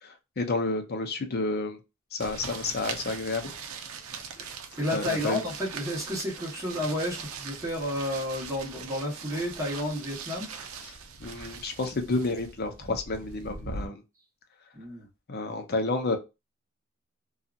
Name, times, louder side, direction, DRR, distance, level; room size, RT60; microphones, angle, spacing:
voice 1, 0.0-1.8 2.1-3.5 4.9-5.4 10.8-10.9 11.2-14.0 15.3-16.2, left 3 dB, 50° left, 0.7 m, -30 dB
sound 1, 2.2-13.9, right 5 dB, 80° right, 0.6 m, -41 dB
voice 2, 4.8-10.7 14.7-15.1, left 1 dB, 15° right, 1.2 m, -31 dB
2.8 x 2.4 x 2.4 m
head